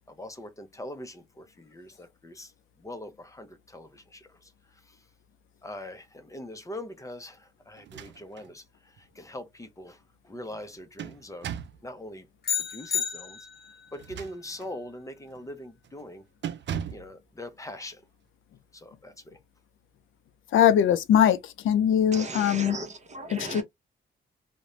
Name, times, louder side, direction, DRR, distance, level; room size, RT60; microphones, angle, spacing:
voice 1, 0.2-2.5 2.8-3.5 3.7-4.3 5.6-7.4 7.7-8.6 9.2-10.0 10.3-11.5 11.8-12.3 12.7-13.4 13.9-16.2 16.9-18.0 18.7-19.1, left 1 dB, 15° left, 0.5 m, -42 dB
sound 1, 7.8-8.5 9.0-9.1 10.5-11.9 13.9-14.8 15.3-15.5 15.8-16.1 16.4-17.1, right 9 dB, 65° right, 0.4 m, -38 dB
sound 2, 12.4-13.9, left 8 dB, 55° left, 0.7 m, -31 dB
voice 2, 20.5-21.4 21.6-22.8 23.3-23.6, left 9 dB, 90° left, 0.4 m, -21 dB
voice 3, 22.1-23.6, right 2 dB, 35° right, 0.8 m, -37 dB
2.4 x 2.1 x 3.0 m
cardioid pair, 105°, 20 cm